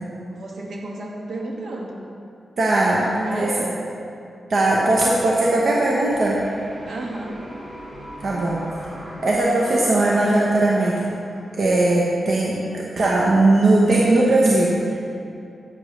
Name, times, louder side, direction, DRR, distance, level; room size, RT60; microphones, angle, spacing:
voice 1, 0.3-2.1 2.8-3.8 6.8-7.4, right 1 dB, 75° right, -1 dB, 1.4 m, -32 dB
voice 2, 2.6-3.0 3.3-3.5 4.5-6.4 8.2-8.6 9.2-11.1 11.6-15.0, right 2 dB, 60° right, -4 dB, 1.0 m, -19 dB
sound 1, 6.1-12.0, equal, 40° right, 2.1 m, -40 dB
10.5 x 8.4 x 3.2 m, 2.6 s
wide cardioid pair, 110°, 0 cm